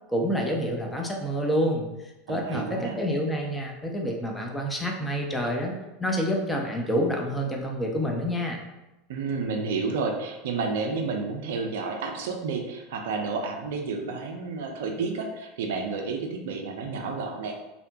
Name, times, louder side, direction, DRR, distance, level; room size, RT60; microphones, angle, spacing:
voice 1, 0.1-1.9 2.3-8.6, equal, 10° left, 0 dB, 0.5 m, -28 dB
voice 2, 2.3-3.0 9.1-17.6, right 4 dB, 65° right, 3 dB, 0.3 m, -31 dB
2.7 x 2.1 x 2.6 m, 0.99 s
figure-of-eight pair, 80°, 0 cm